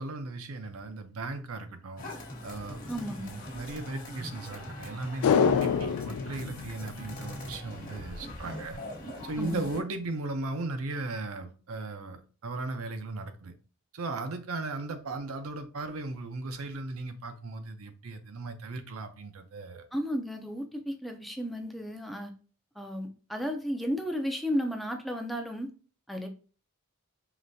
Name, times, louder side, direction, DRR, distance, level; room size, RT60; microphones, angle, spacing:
voice 1, 0.0-2.1 2.4-2.9 3.2-8.8 9.2-13.5 13.9-19.9, right 2 dB, 75° right, 0.6 m, -37 dB
sound 1, 2.0-9.8, left 1 dB, 40° left, 1.0 m, -42 dB
voice 2, 2.9-3.4 9.4-9.6 19.9-22.3 22.8-25.7 26.1-26.3, equal, ahead, 0.4 m, -33 dB
sound 2, 5.2-7.7 8.0-8.1, left 7 dB, 80° left, 0.3 m, -27 dB
5.0 x 3.2 x 2.6 m
head